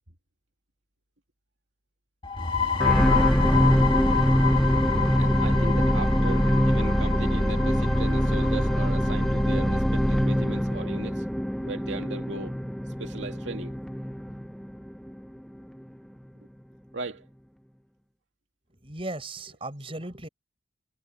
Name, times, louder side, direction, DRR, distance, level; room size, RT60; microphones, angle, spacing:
sound 1, 2.2-9.7, left 6 dB, 25° left, 2.1 m, -29 dB
sound 2, 2.8-15.2 15.8-15.9, equal, ahead, 1.0 m, -24 dB
voice 1, 5.2-11.2 11.6-12.5 13.0-13.7 16.9-17.3, right 2 dB, 75° right, 2.3 m, -37 dB
voice 2, 18.8-20.3, right 2 dB, 30° right, 5.7 m, -36 dB
head